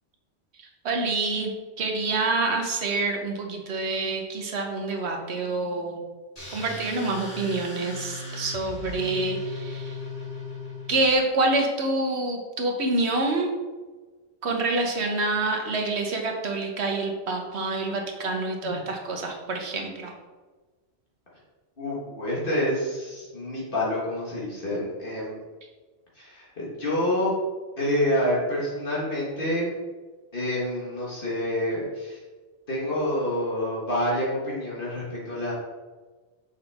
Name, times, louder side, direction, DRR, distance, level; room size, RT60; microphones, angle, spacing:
voice 1, 0.8-6.0 6.5-10.0 10.9-13.5 14.4-20.1, right 2 dB, 75° right, 2 dB, 1.3 m, -27 dB
sound 1, 6.4-11.1, left 4 dB, 35° left, 1.9 m, -37 dB
voice 2, 21.8-25.4 26.1-27.3 27.8-29.8 30.3-32.2 32.7-35.5, left 1 dB, 55° left, -6 dB, 1.6 m, -28 dB
6.3 x 5.3 x 3.5 m, 1.3 s
omnidirectional pair, 1.1 m